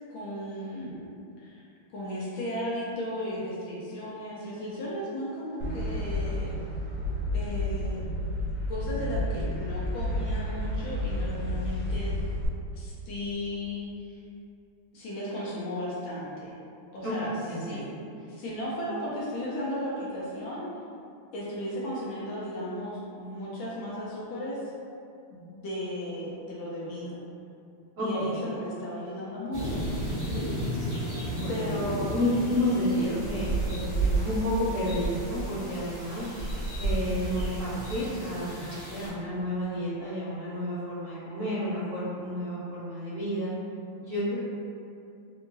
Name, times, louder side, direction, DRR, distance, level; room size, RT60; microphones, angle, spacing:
voice 1, 0.1-1.0 1.4-1.6 1.9-6.6 7.3-8.1 8.7-12.2 12.8-14.2 14.9-16.5 16.9-17.3 17.6-17.8 18.3-20.7 21.3-24.6 25.3-27.2 28.0-29.7 31.5-32.2, left 1 dB, 70° left, -7 dB, 1.3 m, -35 dB
sound 1, 5.6-12.5, left 1 dB, 60° right, 1.0 m, -31 dB
voice 2, 17.5-17.9 28.0-28.4 31.3-31.8 32.1-36.3 36.8-43.5 44.0-44.4, equal, 75° right, -12 dB, 0.7 m, -31 dB
sound 2, 29.5-39.1, right 2 dB, 40° left, 1.4 m, -32 dB
3.5 x 2.8 x 2.5 m, 2.6 s
omnidirectional pair, 2.4 m